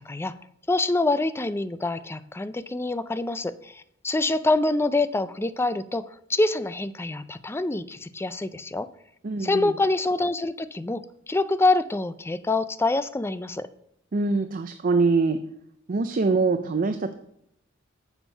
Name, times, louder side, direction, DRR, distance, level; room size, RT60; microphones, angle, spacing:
voice 1, 0.7-6.0 6.3-8.9 9.4-13.7, left 2 dB, 10° left, 14 dB, 0.4 m, -25 dB
voice 2, 9.2-9.7 14.1-15.4 15.9-17.1, right 3 dB, 45° right, 8 dB, 0.5 m, -24 dB
7.3 x 7.0 x 5.5 m, 0.73 s
head